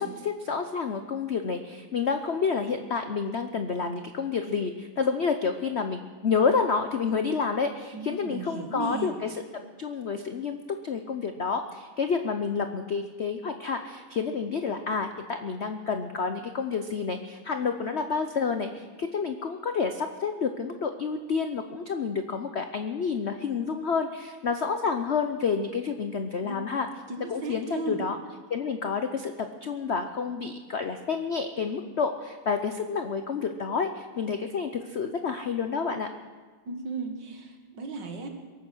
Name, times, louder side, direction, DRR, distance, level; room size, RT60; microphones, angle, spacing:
voice 1, 0.0-9.3 9.8-26.9 27.3-28.2 28.5-36.1, left 5 dB, 75° left, 7 dB, 0.6 m, -29 dB
voice 2, 7.9-9.2 26.4-26.6 27.1-28.0 36.7-38.3, right 3 dB, 60° right, 4 dB, 2.3 m, -35 dB
22.5 x 9.3 x 6.2 m, 1.5 s
omnidirectional pair, 2.2 m